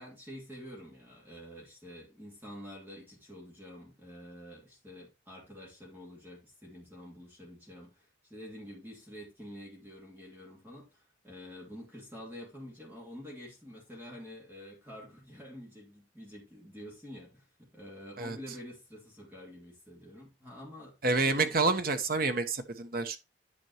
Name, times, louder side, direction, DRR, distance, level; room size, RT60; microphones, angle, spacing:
voice 1, 0.0-21.5, equal, 10° right, 2.7 m, -48 dB
voice 2, 21.0-23.2, right 3 dB, 50° right, 0.9 m, -28 dB
9.6 x 5.2 x 3.0 m
head